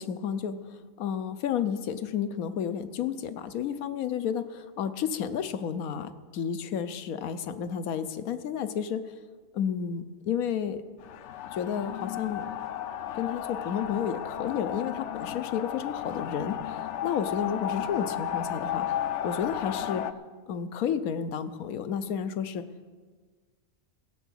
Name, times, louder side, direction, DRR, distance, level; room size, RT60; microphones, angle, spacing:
voice 1, 0.0-9.0 9.5-10.8 11.5-12.4 13.1-18.9 19.2-20.1 20.5-22.7, left 8 dB, 85° left, 11 dB, 1.2 m, -31 dB
sound 1, 11.0-20.1, left 10 dB, 65° left, 0.8 m, -34 dB
16.5 x 7.0 x 8.3 m, 1.5 s
omnidirectional pair, 1.5 m